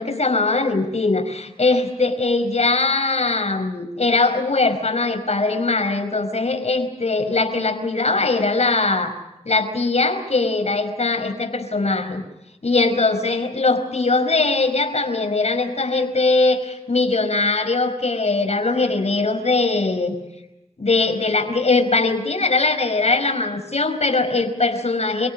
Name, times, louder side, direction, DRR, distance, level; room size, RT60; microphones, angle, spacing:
voice 1, 0.0-9.1 9.4-12.2 12.6-20.2 20.8-25.3, left 3 dB, 55° left, 7 dB, 4.9 m, -21 dB
28.0 x 17.5 x 7.4 m, 0.89 s
cardioid pair, 45°, 13 cm